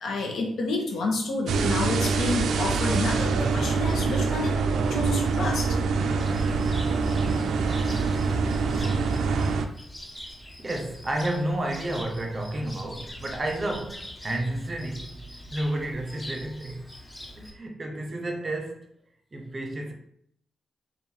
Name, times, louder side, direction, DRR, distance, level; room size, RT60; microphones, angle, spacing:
voice 1, 0.0-4.6 4.9-5.8, left 2 dB, 70° left, 1.0 m, -29 dB
sound 1, 1.5-9.7, right 4 dB, 80° right, 0.4 m, -25 dB
Cricket, 6.2-17.5, left 1 dB, 15° left, 0.7 m, -43 dB
voice 2, 10.6-15.2 15.5-16.9 17.4-18.9 19.3-19.9, right 1 dB, 25° right, 0.7 m, -31 dB
3.5 x 2.6 x 4.4 m
wide cardioid pair, 140°, 0 cm